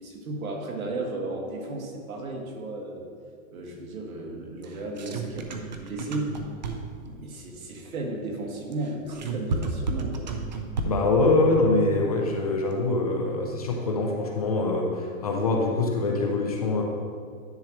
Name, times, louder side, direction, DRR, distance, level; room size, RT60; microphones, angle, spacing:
voice 1, 0.0-3.1 3.5-6.3 7.0-10.3, right 2 dB, 80° right, 0 dB, 1.9 m, -34 dB
sound 1, 4.6-7.1 8.7-11.2, right 3 dB, 35° right, 0.4 m, -32 dB
voice 2, 10.8-16.8, left 2 dB, 30° left, 1 dB, 0.5 m, -24 dB
10.5 x 6.3 x 3.0 m, 2.1 s
hypercardioid pair, 170°, 41 cm